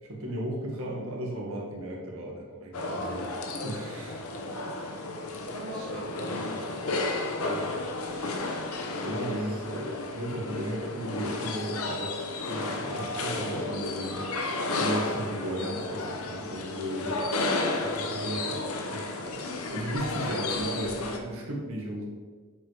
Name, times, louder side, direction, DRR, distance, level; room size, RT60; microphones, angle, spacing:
voice 1, 0.0-4.2 7.4-7.8 8.2-8.7 9.0-14.2 14.7-17.2 18.0-18.6 18.9-22.1, right 1 dB, 70° right, -2 dB, 1.9 m, -35 dB
sound 1, 2.7-21.2, left 2 dB, 75° left, 1.0 m, -33 dB
voice 2, 4.4-4.8 5.5-7.0 17.3-18.4, right 1 dB, 85° right, -5 dB, 1.2 m, -42 dB
7.4 x 5.0 x 4.8 m, 1.5 s
head